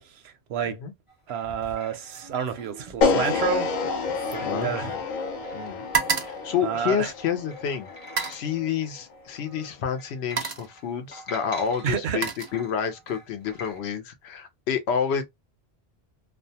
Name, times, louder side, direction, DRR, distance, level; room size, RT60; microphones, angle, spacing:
sound 1, 1.1-6.8 7.1-7.2 7.5-8.9 9.3-13.8, equal, 30° left, 1.0 m, -46 dB
voice 1, 1.3-3.7 4.3-4.9 6.6-7.1 11.8-12.3, right 7 dB, 80° right, 0.8 m, -29 dB
sound 2, 1.4-1.8 2.1-5.2 5.5-7.4 8.0-8.5 9.5-9.7 10.1-10.8 11.7-13.0 13.4-13.8, right 5 dB, 45° right, 0.4 m, -33 dB
sound 3, 3.0-9.2, left 4 dB, 55° left, 0.6 m, -29 dB
voice 2, 4.4-5.0 5.5-5.8 6.2-7.9 8.3-15.2, left 7 dB, 80° left, 0.9 m, -29 dB
2.5 x 2.2 x 2.7 m
omnidirectional pair, 1.1 m